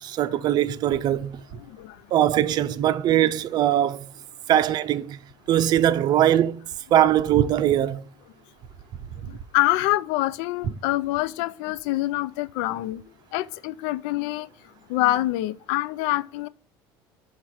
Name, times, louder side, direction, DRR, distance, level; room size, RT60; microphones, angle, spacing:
voice 1, 0.0-1.4 2.1-4.0 4.5-5.2 5.5-6.6 6.9-8.0, right 11 dB, 45° right, 0.5 m, -21 dB
voice 2, 9.3-13.0 13.3-14.5 14.9-16.5, left 17 dB, 80° left, 0.3 m, -25 dB
5.7 x 4.3 x 4.7 m
cardioid pair, 130°, 10 cm